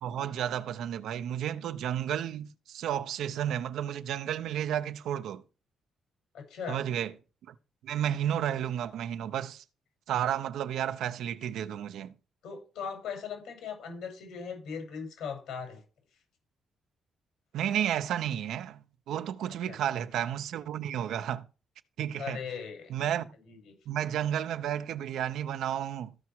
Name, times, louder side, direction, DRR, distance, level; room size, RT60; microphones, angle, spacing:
voice 1, 0.0-5.4 6.7-7.1 7.5-7.6 7.8-9.6 10.1-12.1 17.5-21.4 22.0-22.4 22.9-23.3 23.9-26.1, right 10 dB, 85° right, 0.8 m, -32 dB
voice 2, 6.3-6.8 12.4-15.8 19.7-19.8 22.2-22.9 23.3-23.7, left 6 dB, 85° left, 6.3 m, -39 dB
14.0 x 6.0 x 4.6 m
cardioid pair, 110°, 0 cm